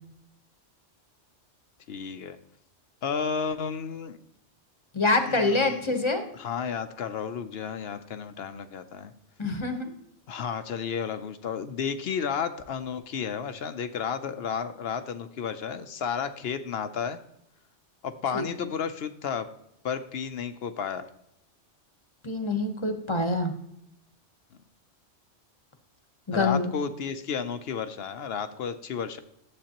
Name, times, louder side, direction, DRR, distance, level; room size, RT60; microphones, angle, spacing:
voice 1, 1.9-2.4 3.0-4.2 5.2-5.8 6.3-9.1 10.3-17.2 18.0-19.5 19.8-21.1 26.3-29.2, left 6 dB, 65° left, 10 dB, 0.8 m, -32 dB
voice 2, 4.9-6.2 9.4-9.9 18.3-18.5 22.2-23.5 26.3-26.7, left 2 dB, 25° left, 6 dB, 0.9 m, -25 dB
11.5 x 7.8 x 2.9 m, 0.77 s
omnidirectional pair, 1.3 m